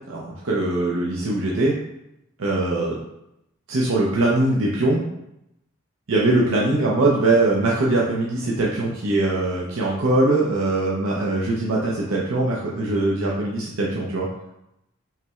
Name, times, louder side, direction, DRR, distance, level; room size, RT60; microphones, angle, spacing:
voice 1, 0.1-1.7 2.4-3.0 3.7-5.0 6.1-14.3, right 2 dB, 70° right, -4 dB, 0.6 m, -21 dB
5.5 x 3.1 x 2.3 m, 0.84 s
head